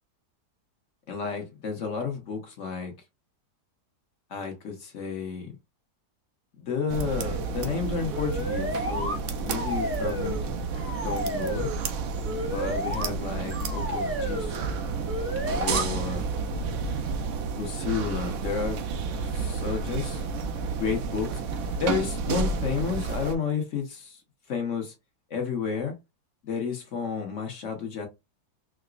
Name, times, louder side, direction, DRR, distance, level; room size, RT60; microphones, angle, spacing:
voice 1, 1.1-2.9 4.3-5.6 6.6-10.5 11.0-11.7 12.5-14.7 15.5-16.3 17.5-18.8 19.3-20.3 20.8-21.4 21.8-24.2 24.5-24.9 25.3-25.9 26.4-28.1, left 6 dB, 55° left, 1.1 m, -31 dB
sound 1, 6.9-23.4, right 4 dB, 70° right, 0.7 m, -31 dB
sound 2, 8.1-9.2 9.5-10.4 10.7-11.8 12.2-13.0 13.5-14.5 15.1-15.8, equal, 10° right, 0.7 m, -32 dB
4.7 x 2.0 x 2.3 m
omnidirectional pair, 1.8 m